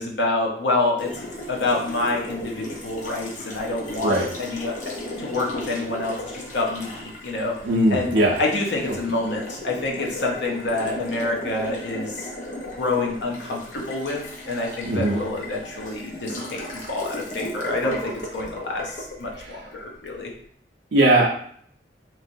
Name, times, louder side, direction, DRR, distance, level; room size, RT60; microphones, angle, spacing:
voice 1, 0.0-4.8 5.2-7.6 7.9-12.3 12.8-20.3, left 2 dB, 80° left, 0 dB, 0.7 m, -27 dB
Water tap faucet, 1.0-20.1, left 1 dB, 45° left, 0.7 m, -36 dB
voice 2, 7.6-8.4 8.9-9.0 14.8-15.2 19.4-19.6 20.9-21.3, right 1 dB, 85° right, -3 dB, 0.5 m, -19 dB
3.1 x 2.8 x 2.6 m, 0.62 s
head